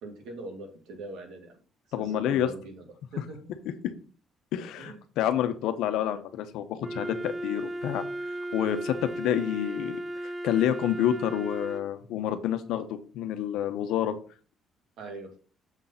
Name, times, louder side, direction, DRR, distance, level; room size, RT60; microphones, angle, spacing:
voice 1, 0.0-1.5 2.0-2.8 3.1-3.4 4.8-5.0 15.0-15.4, right 2 dB, 75° right, 3 dB, 2.4 m, -41 dB
voice 2, 1.9-2.5 4.5-14.1, left 10 dB, 85° left, 9 dB, 1.0 m, -29 dB
Wind instrument woodwind instrument, 6.8-11.9, right 1 dB, 15° right, 0.6 m, -36 dB
7.2 x 4.0 x 5.7 m, 0.38 s
cardioid pair, 115°, 0 cm